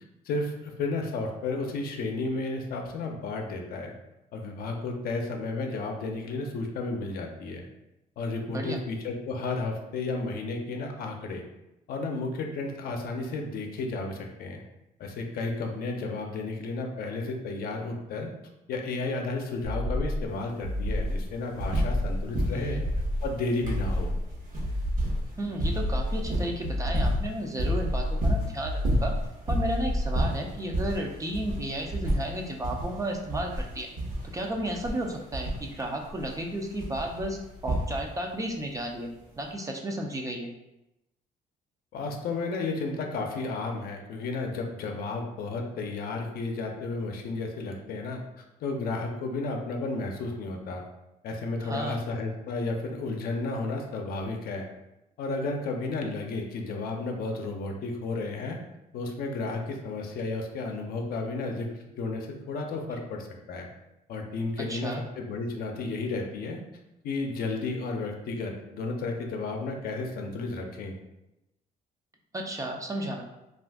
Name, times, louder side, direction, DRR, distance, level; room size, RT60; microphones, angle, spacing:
voice 1, 0.2-3.9 4.3-7.7 8.2-11.4 11.9-14.6 15.0-18.3 18.7-22.8 23.2-24.1 41.9-50.8 51.2-54.7 55.2-58.6 58.9-63.7 64.1-66.6 67.0-70.9, left 3 dB, 70° left, 3 dB, 0.5 m, -32 dB
voice 2, 8.5-8.8 22.5-22.8 25.4-29.1 29.5-33.9 34.3-39.1 39.4-40.5 51.6-52.0 64.7-65.0 72.3-73.2, right 1 dB, 20° right, 1 dB, 0.4 m, -33 dB
sound 1, 19.6-20.3 20.6-21.3 21.6-22.3 22.6-23.3 23.6-24.3 24.6-25.3 25.6-26.3 26.6-27.3 27.6-28.3 28.6-29.3 29.6-30.3, equal, 85° right, 0.9 m, -29 dB
sound 2, 20.3-20.4 20.6-22.1 22.3-38.3 39.4-39.5, equal, 60° right, 1.0 m, -31 dB
2.4 x 2.4 x 3.4 m, 0.93 s
cardioid pair, 100°, 16 cm